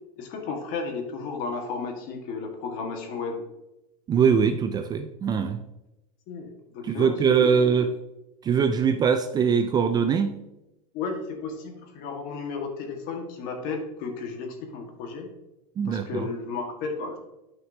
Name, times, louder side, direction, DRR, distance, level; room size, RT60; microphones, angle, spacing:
voice 1, 0.2-3.4 6.3-7.8 10.9-15.3 15.9-17.2, left 4 dB, 50° left, 3 dB, 1.7 m, -33 dB
voice 2, 4.1-5.6 6.8-7.9 8.4-10.4 15.8-16.3, right 6 dB, 20° right, 8 dB, 0.4 m, -22 dB
9.7 x 5.7 x 2.8 m, 0.92 s
supercardioid pair, 135°, 19 cm